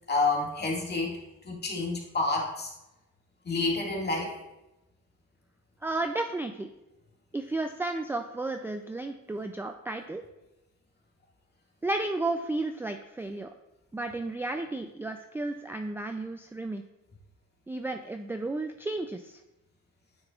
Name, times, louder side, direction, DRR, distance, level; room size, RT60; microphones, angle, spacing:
voice 1, 0.1-1.2 1.4-2.7 3.4-4.3, left 3 dB, 35° left, -2 dB, 2.0 m, -29 dB
voice 2, 5.8-6.7 7.3-10.2 11.8-13.5 13.9-16.8 17.7-19.4, right 2 dB, 10° right, 6 dB, 0.3 m, -33 dB
9.3 x 6.6 x 2.4 m, 0.94 s
cardioid pair, 90°, 30 cm